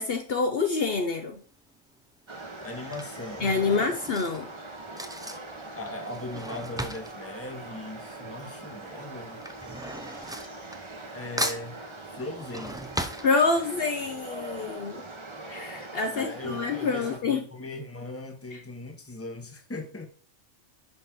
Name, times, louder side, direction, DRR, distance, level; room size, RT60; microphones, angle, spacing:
voice 1, 0.0-1.4 3.4-4.5 13.2-15.0 15.5-17.4 18.5-18.6, left 4 dB, 55° left, 0.9 m, -27 dB
Drawer open or close / Cutlery silverware, 1.4-1.8 2.6-8.5 8.7-11.1 11.4-13.9 14.3-14.4 14.6-14.7, right 1 dB, 5° right, 0.4 m, -37 dB
sound 1, 2.3-17.2, right 2 dB, 25° right, 0.9 m, -42 dB
voice 2, 2.6-3.9 5.7-9.4 11.1-11.8 12.1-12.8 16.1-20.1, left 2 dB, 10° left, 1.1 m, -39 dB
10.5 x 4.2 x 3.7 m
omnidirectional pair, 1.3 m